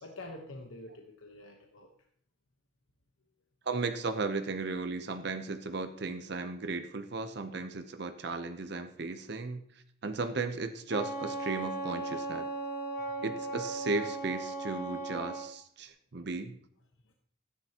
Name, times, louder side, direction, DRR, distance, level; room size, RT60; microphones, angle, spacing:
voice 1, 0.0-1.9 17.0-17.1, left 2 dB, 85° left, 2 dB, 1.0 m, -46 dB
voice 2, 3.7-9.6 10.0-12.5 13.2-16.6, right 3 dB, 55° right, 8 dB, 0.7 m, -35 dB
Wind instrument woodwind instrument, 10.9-15.5, right 2 dB, 50° left, 1.2 m, -37 dB
13.5 x 9.7 x 2.9 m, 0.62 s
head